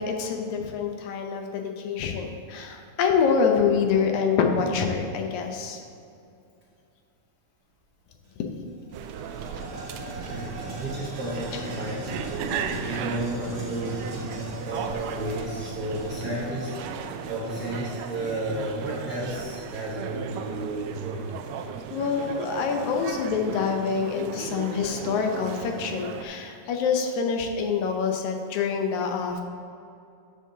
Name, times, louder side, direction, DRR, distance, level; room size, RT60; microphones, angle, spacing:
voice 1, 0.0-5.8 21.9-29.4, left 6 dB, 75° left, 3 dB, 2.1 m, -26 dB
sound 1, 8.2-8.3 8.7-19.4, right 1 dB, 45° right, 2.4 m, -40 dB
sound 2, 8.9-26.2, right 7 dB, 90° right, 1.5 m, -36 dB
voice 2, 10.3-12.1 12.8-21.3, right 1 dB, 70° right, -5 dB, 0.9 m, -33 dB
13.0 x 7.2 x 2.8 m, 2.5 s
omnidirectional pair, 3.6 m